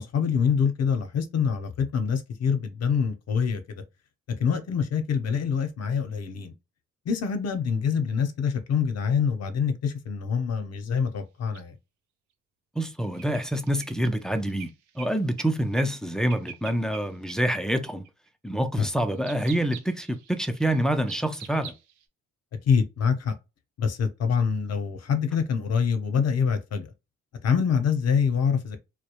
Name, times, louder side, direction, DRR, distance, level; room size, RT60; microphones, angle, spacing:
voice 1, 0.0-3.8 4.4-6.5 7.1-11.7 18.8-18.9 22.7-23.3 23.8-26.9 27.4-28.8, left 6 dB, 55° left, 0.7 m, -25 dB
sound 1, 11.5-11.6 13.0-15.5 15.8-16.0 16.3-17.0 17.3-17.4 18.0-18.3 19.2-22.0, right 9 dB, 75° right, 0.6 m, -44 dB
voice 2, 12.8-14.7 15.0-18.0 18.4-21.7, right 1 dB, ahead, 0.4 m, -26 dB
2.3 x 2.0 x 2.8 m
cardioid pair, 90°, 30 cm